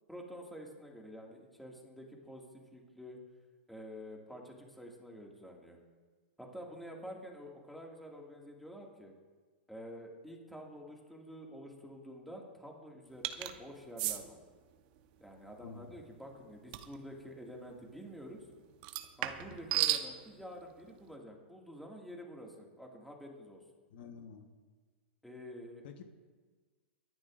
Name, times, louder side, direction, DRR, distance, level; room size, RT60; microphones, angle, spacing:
voice 1, 0.1-3.2 3.7-5.8 6.4-9.1 9.7-14.4 15.2-18.5 19.2-23.6 25.2-25.8, equal, ahead, -1 dB, 2.1 m, -48 dB
sound 1, 13.2-13.5 14.0-14.2 16.7-16.9 18.8-20.1, right 14 dB, 50° right, 1.0 m, -33 dB
voice 2, 23.9-24.5 25.8-26.0, left 6 dB, 60° left, 5 dB, 1.3 m, -49 dB
24.0 x 10.5 x 2.6 m, 1.4 s
hypercardioid pair, 130°, 6 cm